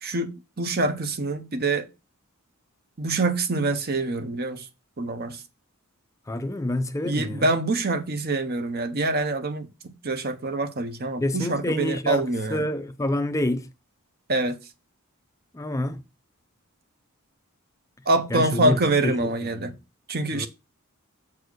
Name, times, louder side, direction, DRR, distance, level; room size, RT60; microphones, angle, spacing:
voice 1, 0.0-1.9 3.0-4.7 5.0-5.4 7.1-12.7 14.3-14.6 18.1-19.7 20.1-20.5, right 2 dB, 45° right, 1.0 m, -25 dB
voice 2, 6.3-7.5 11.2-12.2 12.5-13.7 15.5-16.0 18.3-19.8 20.3-20.5, left 1 dB, 15° left, 0.5 m, -28 dB
7.2 x 4.5 x 6.2 m
head